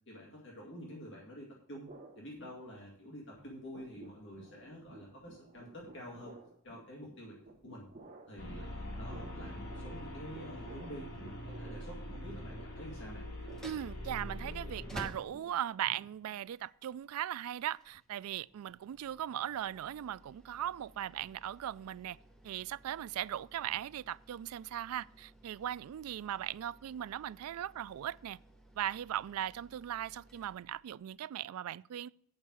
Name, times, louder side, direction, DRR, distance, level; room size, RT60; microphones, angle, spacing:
voice 1, 0.1-1.9 2.2-6.4 6.6-7.9 8.3-13.3, equal, 55° left, 2.1 m, -48 dB
sound 1, 1.9-3.1 3.4-16.5, right 2 dB, 35° right, 1.0 m, -55 dB
sound 2, 8.4-15.1, equal, 75° left, 3.7 m, -43 dB
sound 3, 13.4-31.2, equal, 5° left, 0.9 m, -56 dB
voice 2, 13.6-22.2 22.4-28.4 28.8-32.1, right 11 dB, 85° right, 0.3 m, -38 dB
8.8 x 5.5 x 7.4 m
head